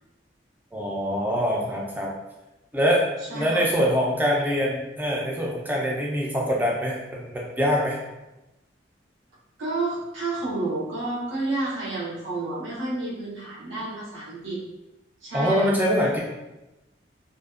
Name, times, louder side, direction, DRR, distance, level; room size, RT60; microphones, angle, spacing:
voice 1, 0.7-2.1 2.7-3.0 3.3-8.0 15.3-16.2, equal, 10° right, -3 dB, 0.3 m, -24 dB
voice 2, 3.3-3.7 9.6-14.6 15.2-15.7, right 2 dB, 85° right, -6 dB, 0.7 m, -30 dB
2.4 x 2.1 x 2.4 m, 1.0 s
head